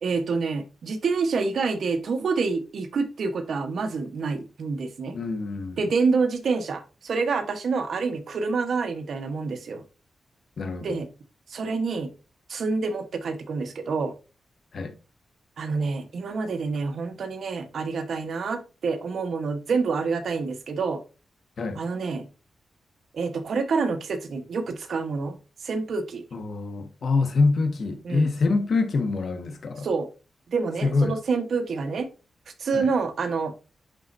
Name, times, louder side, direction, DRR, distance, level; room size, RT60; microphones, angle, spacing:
voice 1, 0.0-5.2 5.8-9.8 10.8-11.1 11.5-12.1 12.5-14.1 15.6-21.0 21.8-22.3 23.1-25.4 25.6-26.2 28.0-28.3 29.8-30.1 30.5-32.1 32.6-33.5, right 4 dB, 70° right, 1.1 m, -27 dB
voice 2, 5.1-5.8 10.6-11.0 14.7-14.9 21.6-21.8 26.3-29.9 30.8-31.2 32.7-32.9, left 3 dB, 60° left, 1.3 m, -25 dB
10.5 x 4.2 x 2.6 m
wide cardioid pair, 110°, 0 cm